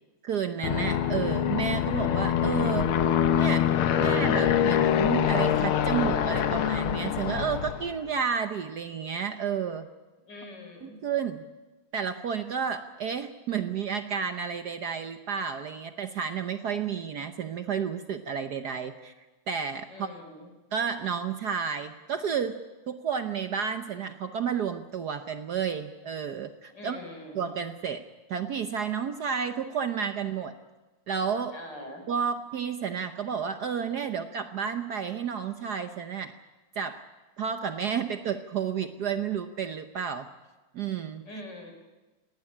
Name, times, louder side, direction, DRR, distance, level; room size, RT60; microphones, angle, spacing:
voice 1, 0.2-2.9 3.3-3.7 4.0-9.9 10.8-11.4 11.9-19.1 19.5-20.1 20.7-27.0 27.3-30.5 31.1-31.5 32.1-36.3 36.8-37.0 37.4-40.3 40.7-41.2, right 7 dB, 60° right, 9 dB, 1.3 m, -31 dB
Aircraft, 0.6-8.0, left 9 dB, 85° left, 1.9 m, -25 dB
voice 2, 10.3-11.0 19.9-20.5 26.7-27.5 31.5-32.1 41.3-41.7, left 1 dB, 55° left, 4 dB, 5.2 m, -43 dB
19.0 x 18.5 x 9.9 m, 1.1 s
omnidirectional pair, 2.3 m